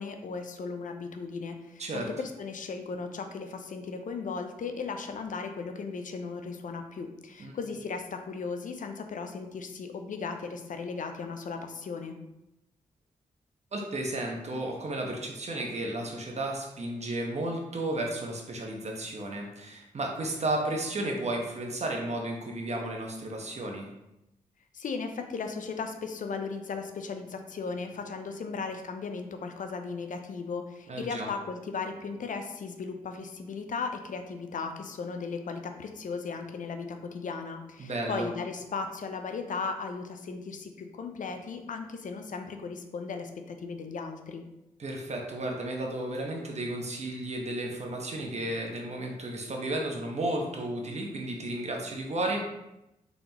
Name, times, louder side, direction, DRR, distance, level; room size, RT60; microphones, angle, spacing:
voice 1, 0.0-12.2 24.7-44.4, left 4 dB, 60° left, 6 dB, 0.6 m, -36 dB
voice 2, 13.7-23.9 30.9-31.3 37.8-38.3 44.8-52.4, right 1 dB, 45° right, 0 dB, 1.0 m, -33 dB
3.8 x 3.4 x 2.9 m, 0.91 s
supercardioid pair, 45°, 15 cm